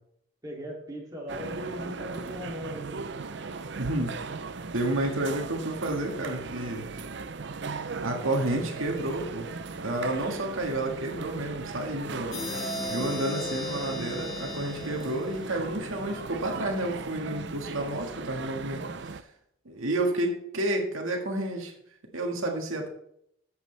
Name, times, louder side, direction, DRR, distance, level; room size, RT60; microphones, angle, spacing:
voice 1, 0.4-3.0 3.6-3.7 17.7-17.9, equal, 15° right, -3 dB, 2.8 m, -39 dB
sound 1, 1.3-19.2, right 4 dB, 55° right, 0.6 m, -38 dB
voice 2, 3.8-4.1 4.7-6.9 8.0-9.5 9.8-12.4 12.9-19.2 19.7-21.7 22.1-22.9, right 1 dB, 80° right, 2 dB, 1.9 m, -30 dB
sound 2, 12.3-15.9, left 1 dB, 80° left, 2.2 m, -36 dB
14.5 x 8.2 x 3.4 m, 0.74 s
head